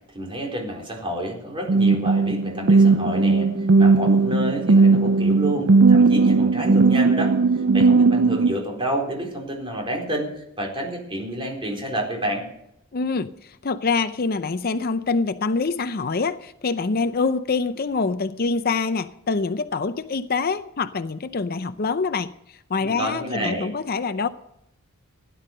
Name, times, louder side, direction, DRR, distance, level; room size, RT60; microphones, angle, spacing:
voice 1, 0.1-3.5 3.8-7.4 7.7-12.4 22.8-23.7, right 1 dB, 25° right, 0 dB, 4.2 m, -29 dB
sound 1, 1.7-8.5, right 3 dB, 60° right, 0.5 m, -17 dB
voice 2, 12.9-13.3 13.6-22.3 22.7-24.3, left 4 dB, 45° left, 11 dB, 0.6 m, -25 dB
16.5 x 11.0 x 6.6 m, 0.79 s
head